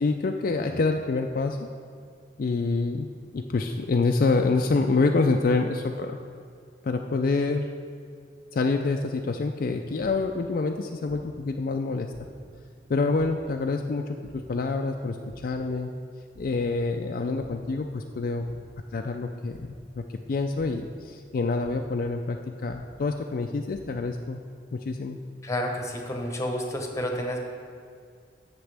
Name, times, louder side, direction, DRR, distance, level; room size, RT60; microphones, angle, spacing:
voice 1, 0.0-1.7 2.4-6.2 6.8-7.7 8.5-12.1 12.9-15.2 15.4-15.9 16.4-18.5 18.9-19.7 20.0-24.4 24.7-25.2, left 3 dB, 50° left, 3 dB, 0.4 m, -27 dB
sound 1, 10.0-10.1 11.1-11.2 12.1-12.2 13.2-13.3 14.2-14.3 15.3-15.4 15.8-16.0 16.3-16.4 17.4-17.5 18.4-18.6 19.5-19.6 20.6-20.7 21.6-21.7 22.7-22.8 23.5-23.8, left 1 dB, 65° right, 1.9 m, -49 dB
voice 2, 25.4-27.4, equal, 20° left, 2 dB, 1.0 m, -30 dB
15.0 x 6.0 x 3.4 m, 2.2 s
head